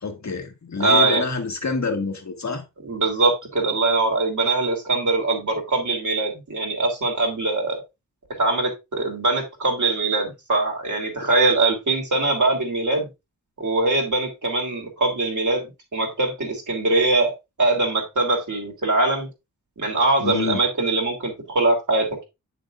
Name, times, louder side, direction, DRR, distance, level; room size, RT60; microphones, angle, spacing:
voice 1, 0.0-2.6 11.2-11.3 20.2-20.6, left 4 dB, 50° left, 1.7 m, -27 dB
voice 2, 0.8-1.2 2.8-7.8 8.4-13.1 13.6-17.3 17.6-19.3 19.8-22.2, right 2 dB, 55° right, 3.1 m, -22 dB
8.6 x 6.6 x 2.5 m
wide cardioid pair, 105°, 35 cm